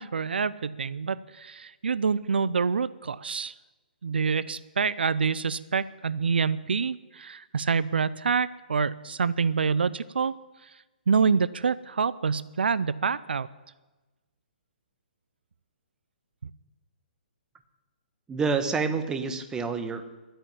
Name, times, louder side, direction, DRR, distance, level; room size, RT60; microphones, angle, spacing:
voice 1, 0.0-3.5 4.0-10.4 11.1-13.5, right 5 dB, 75° right, 17 dB, 0.5 m, -26 dB
voice 2, 18.3-20.0, right 5 dB, 10° right, 8 dB, 1.2 m, -28 dB
12.5 x 8.9 x 10.0 m, 1.2 s
hypercardioid pair, 135°, 5 cm